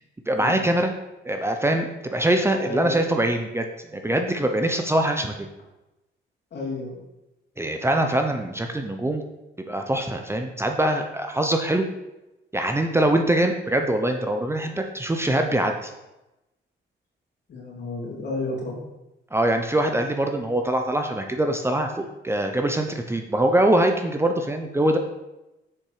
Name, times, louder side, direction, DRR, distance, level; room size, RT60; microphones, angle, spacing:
voice 1, 0.3-0.9 1.3-5.5 7.6-9.2 9.7-11.8 12.5-15.9 19.3-25.0, right 1 dB, 10° right, 4 dB, 0.7 m, -23 dB
voice 2, 2.6-3.1 6.5-7.0 17.5-18.8, left 2 dB, 60° left, -3 dB, 3.0 m, -32 dB
7.2 x 5.4 x 4.9 m, 0.98 s
cardioid pair, 90°, 20 cm